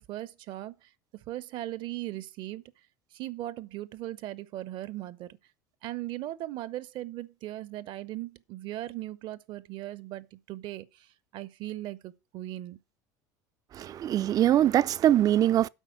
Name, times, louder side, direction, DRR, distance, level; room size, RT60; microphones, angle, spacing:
voice 1, 0.0-2.6 3.1-5.4 5.8-12.8, right 15 dB, 60° right, 0.8 m, -38 dB
voice 2, 13.7-15.7, right 12 dB, 40° right, 0.4 m, -23 dB
8.2 x 5.1 x 7.1 m
supercardioid pair, 90°, 9 cm